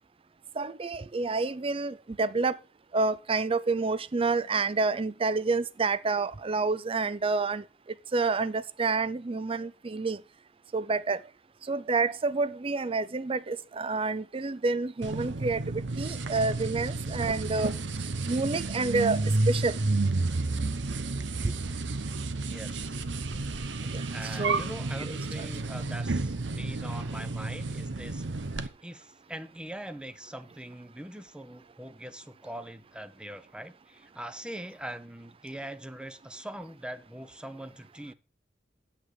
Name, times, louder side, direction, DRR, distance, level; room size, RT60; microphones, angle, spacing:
voice 1, 0.6-2.6 2.9-7.6 8.1-10.2 10.7-11.2 11.7-17.7 18.3-19.2 19.5-19.8 21.4-21.5 23.9-24.0 24.4-24.7 25.0-25.1, right 3 dB, 30° right, 0.5 m, -28 dB
sound 1, 15.0-28.7, right 2 dB, 75° right, 0.9 m, -31 dB
voice 2, 22.5-23.0 24.1-28.2 28.6-38.1, right 1 dB, 5° right, 0.8 m, -42 dB
8.9 x 7.9 x 4.8 m
head